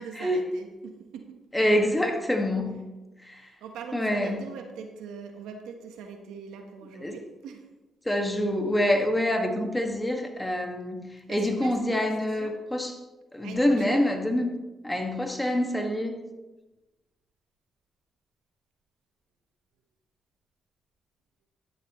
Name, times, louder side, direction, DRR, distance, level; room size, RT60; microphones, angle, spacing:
voice 1, 0.0-1.4 2.7-2.8 3.3-7.6 11.3-12.5 13.4-14.2, right 6 dB, 85° right, 1.3 m, -42 dB
voice 2, 1.5-2.8 3.2-3.5 3.9-4.5 7.0-7.2 8.0-13.0 13.3-16.2, left 1 dB, 10° left, 2.0 m, -26 dB
13.0 x 10.5 x 3.2 m
supercardioid pair, 55°, 0 cm